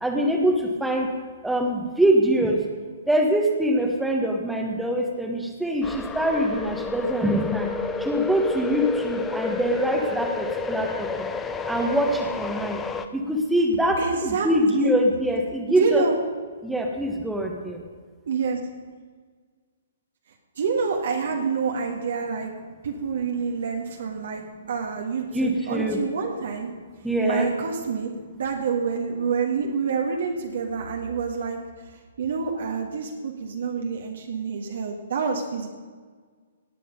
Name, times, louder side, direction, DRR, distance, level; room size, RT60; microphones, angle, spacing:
voice 1, 0.0-1.1 1.4-2.6 3.1-7.7 8.0-11.1 11.7-12.8 13.1-16.1 16.6-17.8 25.3-26.0 27.0-27.5, right 1 dB, 5° right, 1 dB, 1.3 m, -24 dB
sound 1, 5.8-13.1, left 4 dB, 10° left, 0.7 m, -30 dB
voice 2, 14.0-14.9 15.7-16.2 18.3-18.6 20.5-22.5 22.8-26.7 27.2-31.6 32.2-35.7, right 5 dB, 60° right, 1 dB, 1.6 m, -27 dB
18.0 x 8.6 x 5.3 m, 1.5 s
figure-of-eight pair, 120°, 0 cm